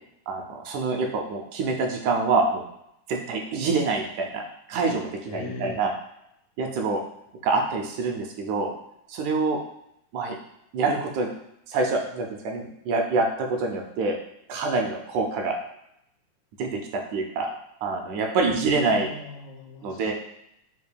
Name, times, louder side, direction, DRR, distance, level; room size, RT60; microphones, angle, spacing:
voice 1, 0.3-2.6 3.1-4.4 4.7-5.9 6.6-7.0 7.4-8.7 9.1-9.6 10.1-10.4 10.7-11.3 11.7-14.2 14.5-15.6 16.6-17.5 17.8-19.1 19.8-20.1, right 3 dB, 80° right, 2 dB, 1.9 m, -26 dB
voice 2, 5.3-5.8 18.6-20.1, left 3 dB, 85° left, 2 dB, 2.1 m, -39 dB
7.0 x 2.7 x 2.2 m, 0.79 s
omnidirectional pair, 3.6 m